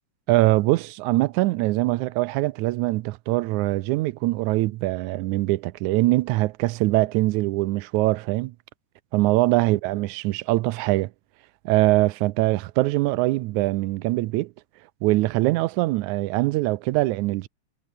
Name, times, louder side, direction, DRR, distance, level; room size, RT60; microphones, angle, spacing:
voice 1, 0.3-8.5 9.1-11.1 11.7-14.5 15.0-17.5, right 19 dB, 85° right, 2.0 m, -23 dB
omnidirectional pair, 3.4 m